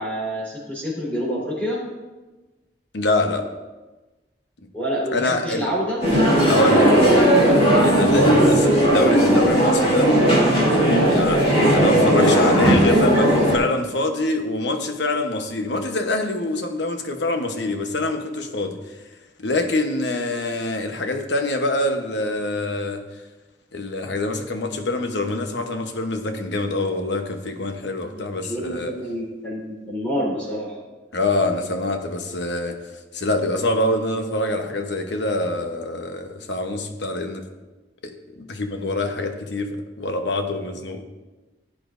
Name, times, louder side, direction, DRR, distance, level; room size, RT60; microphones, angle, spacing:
voice 1, 0.0-1.8 4.7-6.0 8.3-8.6 11.9-12.2 28.0-30.8, equal, 10° left, -7 dB, 3.8 m, -28 dB
voice 2, 2.9-3.5 5.1-5.7 6.5-7.3 7.8-10.1 11.0-18.8 19.4-23.0 23.7-28.9 31.1-32.8 33.1-37.4 38.0-41.0, left 2 dB, 75° left, 6 dB, 1.0 m, -25 dB
sound 1, 6.0-13.6, right 1 dB, 35° left, 3.5 m, -16 dB
15.5 x 8.6 x 2.6 m, 1.2 s
head